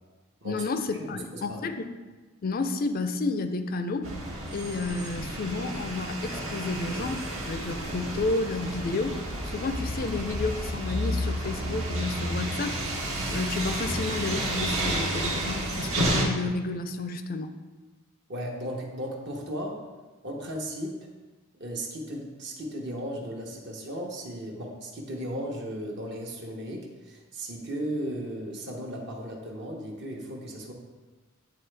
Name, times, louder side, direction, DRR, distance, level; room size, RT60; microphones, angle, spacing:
voice 1, 0.4-1.8 2.4-4.1 4.5-12.8 13.3-17.5, left 3 dB, 45° left, 9 dB, 0.4 m, -31 dB
voice 2, 1.1-1.6 18.3-19.8 20.2-21.0 21.6-30.7, equal, 55° right, -1 dB, 1.0 m, -36 dB
sound 1, 4.0-16.3, right 1 dB, 70° right, 1.2 m, -31 dB
9.5 x 3.8 x 3.3 m, 1.3 s
head